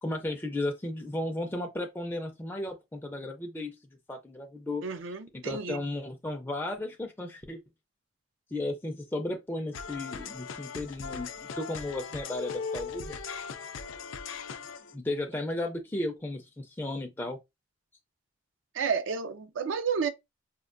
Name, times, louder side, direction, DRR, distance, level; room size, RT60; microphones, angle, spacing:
voice 1, 0.0-3.7 4.1-4.8 5.3-7.6 8.5-13.2 14.9-17.4, left 1 dB, 10° left, 0.4 m, -34 dB
voice 2, 4.8-5.8 18.7-20.1, right 6 dB, 75° right, 0.4 m, -31 dB
Ale Brider, 9.7-14.9, left 5 dB, 90° left, 0.4 m, -39 dB
4.3 x 2.2 x 2.5 m
head